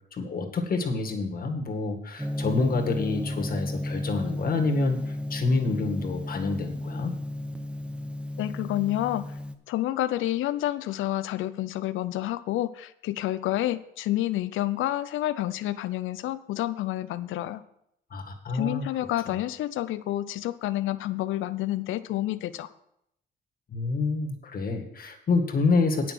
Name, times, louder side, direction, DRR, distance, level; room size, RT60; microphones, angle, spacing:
voice 1, 0.1-7.1 18.1-18.8 23.7-26.1, left 3 dB, 45° left, 3 dB, 1.9 m, -27 dB
Gong, 2.2-9.5, left 1 dB, 5° right, 0.8 m, -33 dB
voice 2, 8.4-9.3 9.7-17.6 18.5-22.7, left 14 dB, 85° left, 14 dB, 0.6 m, -29 dB
8.9 x 6.2 x 7.6 m, 0.77 s
cardioid pair, 90°, 20 cm